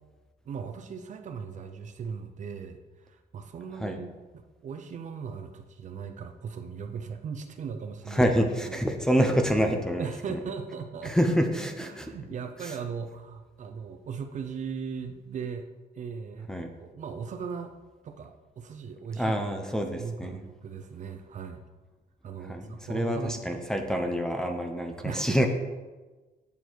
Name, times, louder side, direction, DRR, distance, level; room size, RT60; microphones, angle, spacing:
voice 1, 0.5-8.3 8.6-8.8 10.0-11.1 11.9-15.7 16.0-16.5 16.8-17.7 18.0-19.4 20.0-21.6 22.2-23.4 25.0-25.5, right 6 dB, 45° right, 6 dB, 0.7 m, -38 dB
voice 2, 8.1-10.4 11.0-12.1 12.6-12.7 16.5-16.7 19.2-20.4 22.4-25.5, equal, 5° left, 3 dB, 0.7 m, -27 dB
8.3 x 7.1 x 4.6 m, 1.2 s
cardioid pair, 155°, 17 cm